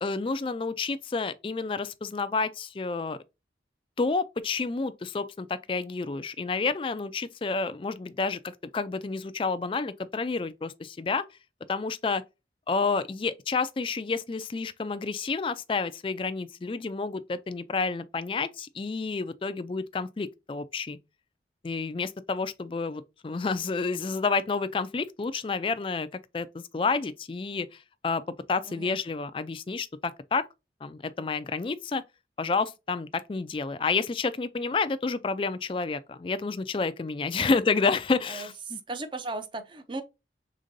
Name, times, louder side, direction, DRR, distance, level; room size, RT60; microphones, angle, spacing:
voice 1, 0.0-3.2 4.0-11.3 11.7-12.2 12.7-21.0 21.6-26.1 26.3-28.2 28.5-30.5 30.8-32.0 32.4-38.8, left 4 dB, 30° left, 0.3 m, -30 dB
voice 2, 28.7-29.0 37.4-37.6 38.3-40.0, right 3 dB, 25° right, 0.6 m, -37 dB
5.1 x 3.7 x 2.6 m
head